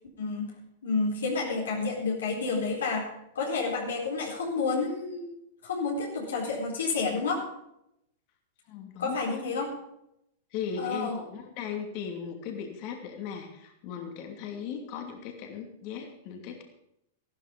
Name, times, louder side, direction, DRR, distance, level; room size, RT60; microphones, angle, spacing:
voice 1, 0.2-0.5 0.8-3.1 3.3-5.3 5.6-7.4 9.0-9.7 10.8-11.2, left 4 dB, 75° left, -2 dB, 4.2 m, -30 dB
voice 2, 8.7-9.7 10.5-16.6, left 7 dB, 50° left, 3 dB, 2.7 m, -38 dB
14.5 x 13.0 x 5.3 m, 0.80 s
hypercardioid pair, 100°, 0 cm